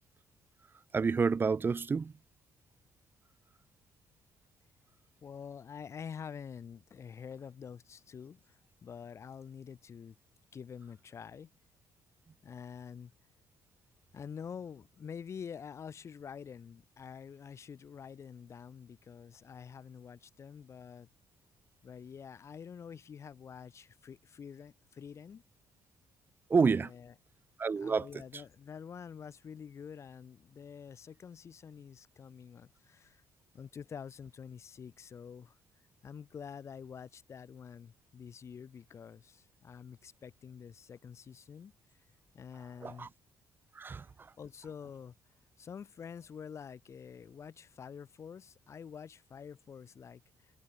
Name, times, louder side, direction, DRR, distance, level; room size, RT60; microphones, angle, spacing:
voice 1, 0.9-2.1 26.5-26.9 27.6-28.1 42.8-43.1 43.7-44.0, right 5 dB, 35° right, 1.7 m, -28 dB
voice 2, 5.2-10.2 10.5-11.5 12.4-13.1 14.1-21.1 21.8-25.4 26.7-27.1 27.8-33.2 33.5-35.6 36.0-41.7 42.3-43.1 44.4-45.1 45.6-50.5, left 7 dB, 45° left, 6.9 m, -47 dB
cardioid pair, 95°, 6 cm